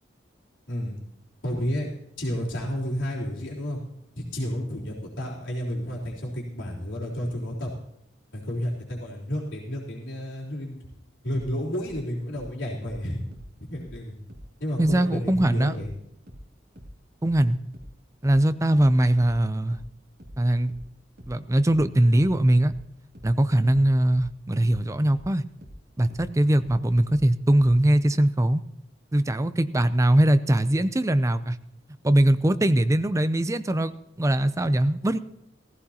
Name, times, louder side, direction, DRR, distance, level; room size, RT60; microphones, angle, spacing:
voice 1, 1.4-1.9 2.2-3.8 4.2-7.7 8.3-10.8 11.2-13.2 13.7-14.1 14.6-15.9, equal, 90° left, -4 dB, 3.7 m, -31 dB
sound 1, 11.8-14.5 14.8-27.8, equal, 55° right, 2.8 m, -45 dB
voice 2, 14.8-15.7 17.2-17.6 18.2-19.8 20.4-20.7 21.3-22.7 23.2-25.4 26.0-28.6 29.1-31.6 32.0-33.9 34.2-35.2, right 1 dB, 15° right, 12 dB, 0.5 m, -21 dB
17.0 x 15.0 x 2.9 m, 0.79 s
head